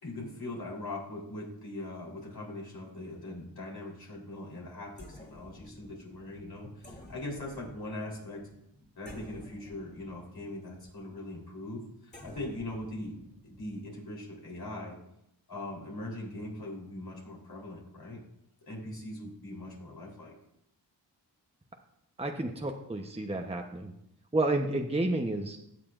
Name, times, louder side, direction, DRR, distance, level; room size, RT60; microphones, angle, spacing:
voice 1, 0.0-8.4 9.0-13.1 13.4-15.0 15.5-18.2 18.7-20.3, left 1 dB, 60° left, -3 dB, 3.7 m, -41 dB
sound 1, 5.0-13.9, left 1 dB, 25° left, 2.8 m, -52 dB
voice 2, 22.2-23.9 24.3-25.6, right 2 dB, 15° right, 3 dB, 0.9 m, -30 dB
17.0 x 6.8 x 2.5 m, 0.80 s
cardioid pair, 60°, 42 cm